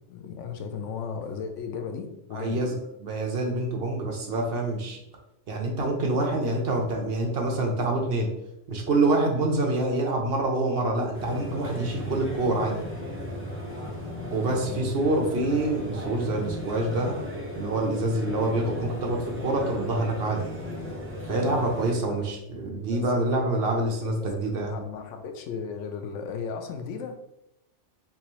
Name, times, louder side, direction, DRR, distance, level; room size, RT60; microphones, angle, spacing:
voice 1, 0.1-2.6 14.6-15.0 22.1-22.3 22.9-23.2 24.2-27.2, left 6 dB, 85° left, 5 dB, 0.9 m, -36 dB
voice 2, 2.3-5.0 5.5-8.3 8.7-12.8 14.3-17.1 17.6-20.4 21.3-24.7, right 2 dB, 60° right, 1 dB, 0.9 m, -26 dB
sound 1, 11.1-22.0, left 1 dB, 15° right, 0.6 m, -36 dB
3.5 x 3.0 x 3.0 m, 0.84 s
omnidirectional pair, 1.2 m